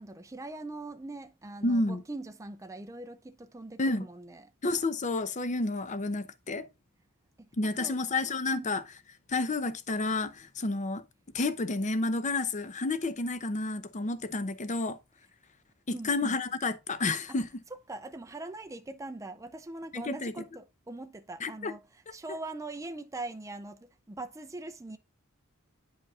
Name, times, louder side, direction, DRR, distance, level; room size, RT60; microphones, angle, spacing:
voice 1, 0.0-4.5 7.6-8.0 8.5-8.8 15.9-16.4 17.9-25.0, right 2 dB, 15° right, 0.5 m, -42 dB
voice 2, 1.6-2.0 3.8-4.1 4.6-6.7 7.6-8.8 9.3-11.0 11.3-15.0 15.9-17.5 19.9-20.3 21.4-21.7, left 2 dB, 35° left, 0.7 m, -30 dB
10.0 x 5.2 x 2.4 m
head